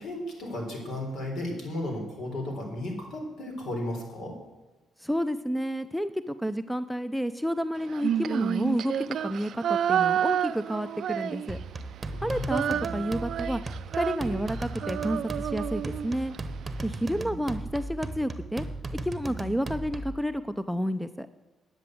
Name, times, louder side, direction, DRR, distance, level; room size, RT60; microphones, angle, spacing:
voice 1, 0.0-4.4 12.1-12.5, left 1 dB, 65° left, 1 dB, 3.7 m, -34 dB
voice 2, 5.0-11.6 12.2-12.6 12.9-13.6 13.9-16.3 16.8-18.6 19.0-21.3, equal, ahead, 13 dB, 0.5 m, -30 dB
Female singing, 7.9-11.8 12.1-16.4, right 9 dB, 65° right, 0.3 m, -30 dB
sound 1, 11.5-20.2, right 2 dB, 25° right, 1.0 m, -37 dB
10.0 x 7.8 x 7.6 m, 1.2 s
cardioid pair, 90°, 0 cm